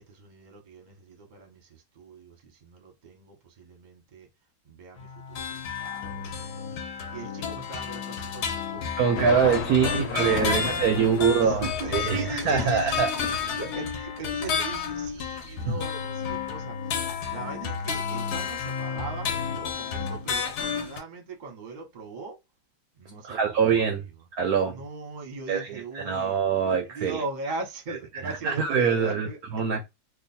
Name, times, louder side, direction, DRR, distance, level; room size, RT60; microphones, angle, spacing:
voice 1, 0.0-4.3 4.6-22.4 22.9-23.8 24.7-29.4, right 3 dB, 35° right, 0.8 m, -40 dB
sound 1, 5.0-21.0, left 6 dB, 65° left, 1.2 m, -32 dB
voice 2, 9.0-13.4 15.7-15.8 23.2-24.1 24.3-24.8 25.5-27.2 28.2-29.3 29.5-29.9, right 6 dB, 70° right, 0.9 m, -24 dB
sound 2, 9.1-16.5, left 6 dB, 85° left, 1.4 m, -35 dB
3.0 x 2.4 x 4.1 m
omnidirectional pair, 2.1 m